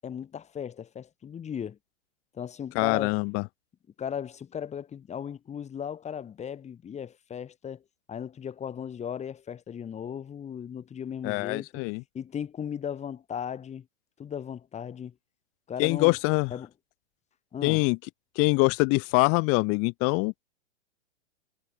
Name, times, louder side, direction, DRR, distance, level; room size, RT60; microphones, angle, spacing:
voice 1, 0.0-1.8 2.3-3.2 4.0-7.8 8.1-11.7 12.1-13.9 14.2-15.1 15.7-16.2 16.5-16.7 17.5-17.8, left 8 dB, 20° left, 7.6 m, -36 dB
voice 2, 2.7-3.4 11.2-12.0 15.8-16.5 17.6-18.0 18.4-20.3, left 30 dB, 35° left, 5.9 m, -24 dB
figure-of-eight pair, 115°, 36 cm